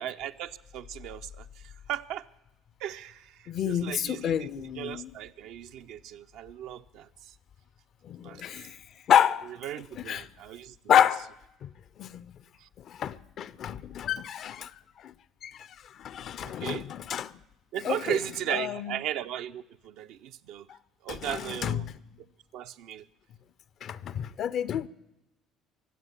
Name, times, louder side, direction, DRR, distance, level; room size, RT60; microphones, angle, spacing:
voice 1, 0.0-1.5 1.9-2.2 2.8-7.1 8.2-8.4 9.6-10.7 12.6-12.7 16.4-16.8 17.7-20.7 21.0-21.9 22.5-23.0, right 11 dB, 60° right, 0.5 m, -36 dB
voice 2, 3.5-5.1 8.0-8.8 9.1-9.5 10.0-10.3 10.9-11.3 11.6-11.7 12.0-12.3 12.9-14.7 15.0-15.1 15.4-15.7 16.0-17.3 17.8-18.2 18.5-19.0 21.1-21.9 23.8-24.9, left 9 dB, 50° left, 0.5 m, -28 dB
23.5 x 7.9 x 7.1 m
figure-of-eight pair, 55°, 0 cm